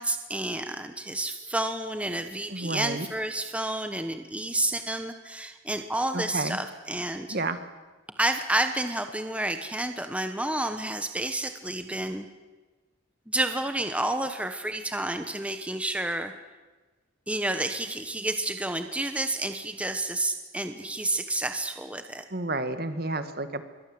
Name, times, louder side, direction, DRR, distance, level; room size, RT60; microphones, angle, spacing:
voice 1, 0.0-7.4 8.2-12.3 13.3-16.3 17.3-22.3, right 1 dB, 5° right, 7 dB, 1.1 m, -30 dB
voice 2, 2.5-3.1 6.1-6.6 7.3-7.6 22.3-23.6, right 2 dB, 45° right, 10 dB, 1.8 m, -30 dB
27.0 x 23.0 x 7.9 m, 1.3 s
head